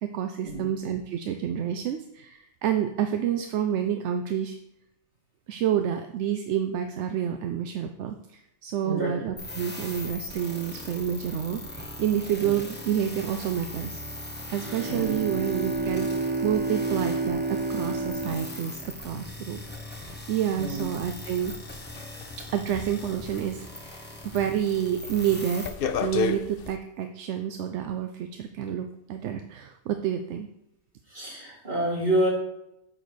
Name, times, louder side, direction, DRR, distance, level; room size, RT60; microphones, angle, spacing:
voice 1, 0.0-4.6 5.5-14.0 14.5-19.6 19.9-21.5 22.4-25.7 26.0-30.5, right 9 dB, 85° right, 6 dB, 0.9 m, -29 dB
voice 2, 8.8-9.2 12.4-12.5 14.9-15.2 20.6-20.8 31.1-32.3, right 1 dB, 55° right, -7 dB, 3.8 m, -28 dB
sound 1, 9.4-25.7, left 1 dB, 10° left, 1.2 m, -40 dB
Bowed string instrument, 14.6-19.8, right 2 dB, 15° right, 0.3 m, -30 dB
sound 2, 21.2-24.0 24.4-24.7 25.0-26.8, left 6 dB, 60° left, 0.7 m, -32 dB
7.6 x 4.1 x 6.5 m, 0.84 s
omnidirectional pair, 1.2 m